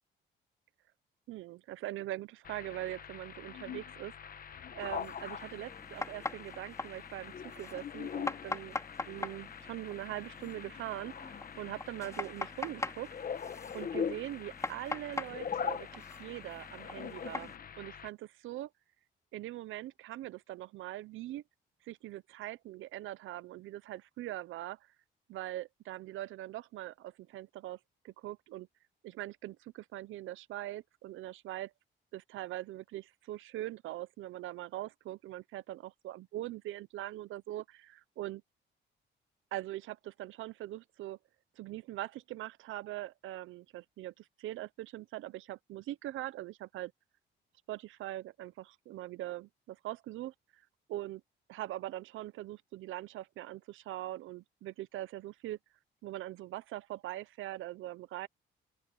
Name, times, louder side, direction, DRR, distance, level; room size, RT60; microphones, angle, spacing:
voice 1, 1.3-8.8 9.1-13.1 13.7-18.7 19.3-21.4 21.8-24.9 25.3-27.8 28.0-28.7 29.0-31.7 32.1-38.4 39.5-41.2 41.6-46.9 47.7-50.6 50.9-51.2 51.5-55.6 56.0-58.3, right 15 dB, 80° right, 0.7 m, -42 dB
sound 1, 2.4-18.1, left 7 dB, 45° left, 1.2 m, -42 dB
sound 2, 4.8-17.6, left 2 dB, 15° left, 5.2 m, -43 dB
open air
cardioid pair, 90°, 20 cm